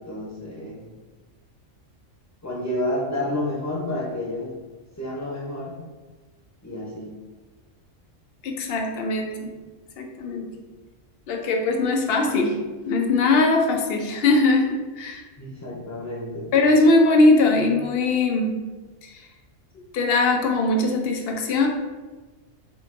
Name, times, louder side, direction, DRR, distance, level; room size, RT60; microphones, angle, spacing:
voice 1, 0.1-0.8 2.4-4.6 5.0-5.8 6.6-7.1 15.4-16.5, left 1 dB, 15° left, -4 dB, 0.7 m, -30 dB
voice 2, 8.4-9.5 10.0-10.5 11.3-12.6 12.9-15.2 16.5-18.6 19.0-19.1 19.9-21.7, left 2 dB, 60° left, 3 dB, 0.6 m, -20 dB
3.8 x 2.5 x 3.7 m, 1.2 s
omnidirectional pair, 1.4 m